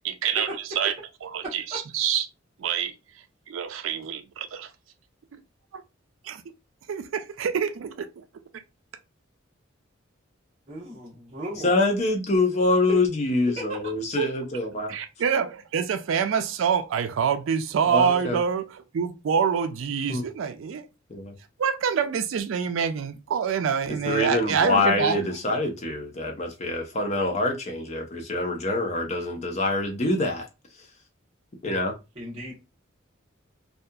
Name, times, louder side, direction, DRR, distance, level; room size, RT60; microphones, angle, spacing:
voice 1, 0.0-0.5 0.8-0.9 1.2-2.2 2.6-2.9 3.5-4.7 5.7-5.8 6.2-6.4 6.9-8.1 14.2-14.3 14.9-20.9 21.6-25.3, right 7 dB, 80° right, 0.4 m, -26 dB
voice 2, 10.7-11.8 12.9-13.0 13.5-13.6 32.1-32.5, equal, 30° right, 0.9 m, -35 dB
voice 3, 11.6-15.0 17.9-18.4 20.1-20.2 21.1-21.3 24.0-30.5 31.6-31.9, left 2 dB, 35° left, 0.6 m, -25 dB
2.7 x 2.3 x 2.2 m
head